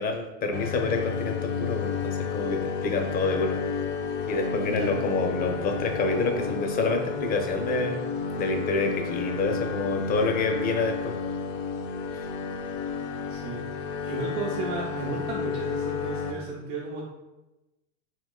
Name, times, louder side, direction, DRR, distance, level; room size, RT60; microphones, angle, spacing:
voice 1, 0.0-3.6 4.3-8.0 8.4-11.1, left 3 dB, 25° left, 4 dB, 0.4 m, -28 dB
sound 1, 0.5-16.3, left 5 dB, 75° left, 0.5 m, -31 dB
voice 2, 4.7-5.0 13.3-17.0, right 3 dB, 70° right, -4 dB, 0.8 m, -35 dB
3.6 x 2.9 x 2.3 m, 1.0 s
hypercardioid pair, 110°, 38 cm